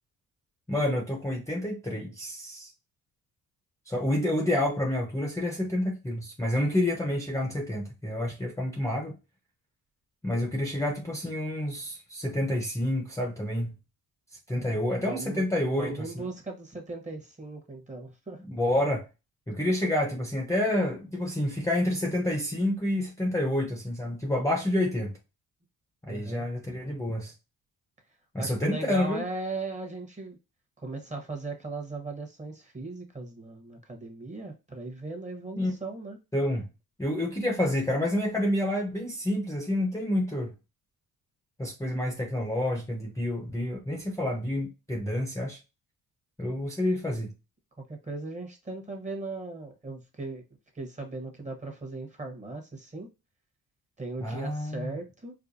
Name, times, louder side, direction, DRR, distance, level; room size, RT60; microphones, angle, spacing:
voice 1, 0.7-2.7 3.9-9.2 10.2-13.8 14.5-16.1 18.5-19.1 19.5-25.1 26.1-27.3 28.3-29.2 35.6-35.7 36.3-36.7 37.0-40.5 41.6-45.6 46.4-47.3 54.2-55.0, left 1 dB, 10° left, 0.8 m, -28 dB
voice 2, 14.5-18.4 26.1-26.4 28.4-30.4 30.8-36.2 47.9-50.4 50.7-53.1 54.0-55.3, right 3 dB, 20° right, 1.1 m, -38 dB
4.7 x 2.1 x 2.6 m
cardioid pair, 90°, 37 cm